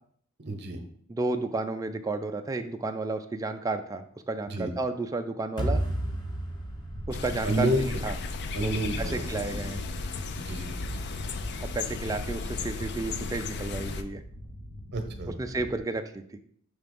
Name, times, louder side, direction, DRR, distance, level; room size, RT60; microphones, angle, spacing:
voice 1, 0.4-0.8 4.5-4.7 7.4-7.8 8.5-9.3 9.5-9.6 10.4-10.7 14.9-15.4, right 1 dB, 50° right, 6 dB, 0.9 m, -29 dB
voice 2, 1.1-5.8 7.1-8.1 8.6-9.8 11.6-14.2 15.4-16.4, right 3 dB, 15° right, 6 dB, 0.3 m, -32 dB
sound 1, 5.6-8.7, right 1 dB, 20° left, 1.3 m, -33 dB
sound 2, 6.2-15.8, equal, 65° left, 1.0 m, -42 dB
sound 3, 7.1-14.0, left 4 dB, 50° left, 0.4 m, -35 dB
5.7 x 3.5 x 5.2 m, 0.63 s
head